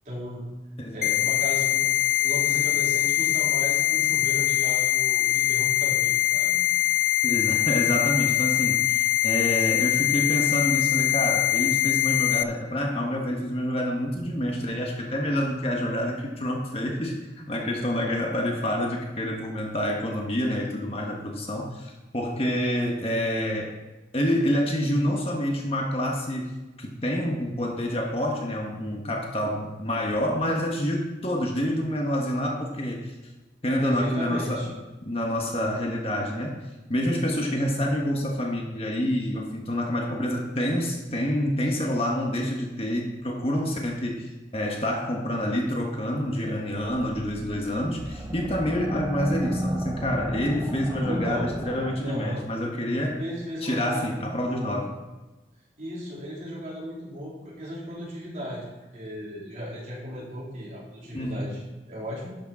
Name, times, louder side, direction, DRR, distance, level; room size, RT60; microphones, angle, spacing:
voice 1, 0.1-0.4 0.9-1.9 2.2-6.6 33.8-34.7 51.1-51.5 52.0-52.4 53.2-54.8 55.8-58.7 58.9-62.4, equal, 40° right, -5 dB, 3.8 m, -36 dB
sound 1, 1.0-12.4, left 15 dB, 50° left, 0.4 m, -23 dB
voice 2, 7.2-23.7 24.1-26.5 26.8-33.1 33.6-34.7 35.0-53.2 53.6-54.9 61.1-61.4, equal, 35° left, 0 dB, 1.4 m, -27 dB
sound 2, 46.8-52.4, equal, 15° right, 0.9 m, -33 dB
12.0 x 6.7 x 4.9 m, 1.1 s
head